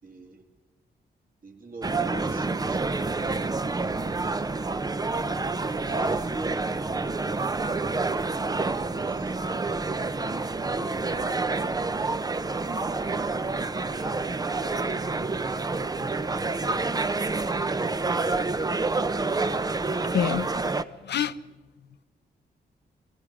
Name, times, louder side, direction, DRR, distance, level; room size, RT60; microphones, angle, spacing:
voice 1, 0.0-0.4 1.4-3.2 3.7-4.4 5.4-6.3 8.3-9.4 13.8-14.8 17.6-19.0, right 3 dB, 55° right, 3 dB, 3.4 m, -49 dB
sound 1, 1.8-20.8, right 3 dB, 20° right, 0.7 m, -28 dB
voice 2, 19.9-22.0, left 9 dB, 75° left, 15 dB, 0.8 m, -31 dB
29.0 x 19.0 x 5.0 m, 1.2 s
wide cardioid pair, 125°, 18 cm